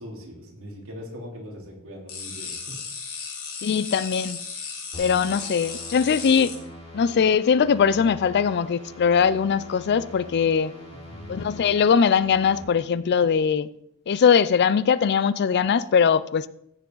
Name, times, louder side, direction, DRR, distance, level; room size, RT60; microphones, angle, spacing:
voice 1, 0.0-2.7 10.9-11.4, equal, 65° right, 3.4 m, -41 dB
sound 1, 2.1-6.5, left 5 dB, 75° left, 3.7 m, -35 dB
voice 2, 3.6-4.4 5.0-6.6 6.9-10.7 11.3-13.7 14.1-16.5, left 6 dB, 50° left, 0.4 m, -21 dB
sound 2, 4.9-12.6, left 1 dB, 30° left, 4.3 m, -43 dB
15.5 x 7.1 x 3.9 m
head